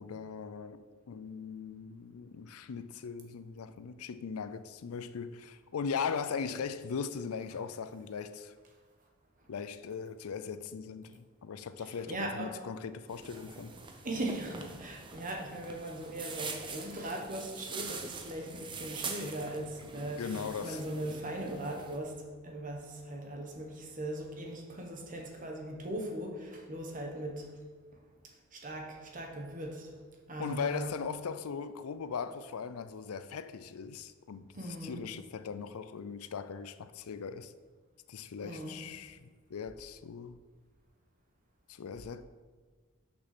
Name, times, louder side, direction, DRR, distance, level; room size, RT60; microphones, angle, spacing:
voice 1, 0.0-8.5 9.5-13.7 20.2-20.8 30.4-37.5 38.1-40.4 41.7-42.2, left 6 dB, 85° left, 0.4 m, -39 dB
voice 2, 12.1-12.6 14.0-20.4 20.6-27.6 27.9-28.0 28.5-29.9 30.3-30.9 34.5-35.0 38.4-38.8, right 1 dB, 40° right, 1.3 m, -39 dB
sound 1, 13.1-22.0, right 4 dB, 20° right, 0.7 m, -44 dB
6.3 x 6.1 x 6.0 m
head